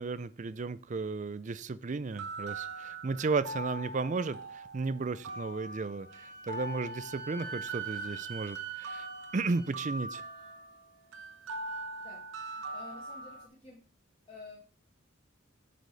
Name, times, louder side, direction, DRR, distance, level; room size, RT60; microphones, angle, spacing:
voice 1, 0.0-9.1 9.3-10.2, right 4 dB, 40° right, 15 dB, 0.4 m, -34 dB
sound 1, 2.1-13.5, right 3 dB, 70° right, 1.0 m, -42 dB
Wind instrument woodwind instrument, 6.1-10.5, right 3 dB, 55° right, 1.4 m, -45 dB
voice 2, 12.0-13.8 14.3-14.6, left 2 dB, 25° left, -3 dB, 1.5 m, -51 dB
8.2 x 5.0 x 4.0 m, 0.41 s
head